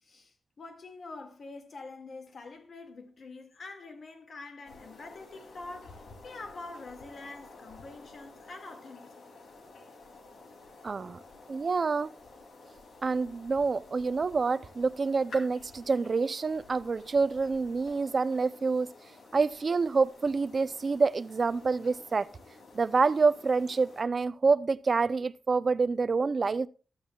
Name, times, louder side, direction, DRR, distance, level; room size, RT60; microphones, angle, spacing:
voice 1, 0.0-9.2 10.9-11.2, left 3 dB, 50° left, 1.8 m, -46 dB
sound 1, 4.6-24.0, left 2 dB, 90° left, 2.7 m, -52 dB
voice 2, 10.8-11.2 11.5-12.1 13.0-18.9 19.3-22.3 22.7-26.7, right 4 dB, 40° right, 0.4 m, -27 dB
14.0 x 12.5 x 2.3 m
wide cardioid pair, 170°, 0 cm